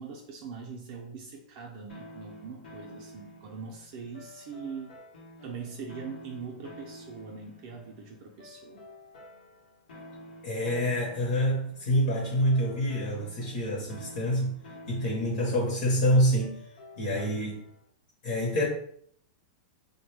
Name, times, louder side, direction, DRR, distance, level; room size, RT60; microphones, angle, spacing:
voice 1, 0.0-5.0 5.4-8.8, right 5 dB, 35° right, 0 dB, 0.4 m, -42 dB
sound 1, 1.9-17.8, left 1 dB, 90° left, 0.9 m, -50 dB
voice 2, 10.4-14.6 14.9-16.6 17.0-17.6 18.2-18.7, equal, 50° left, -2 dB, 0.8 m, -26 dB
3.3 x 2.1 x 3.2 m, 0.64 s
supercardioid pair, 170°, 5 cm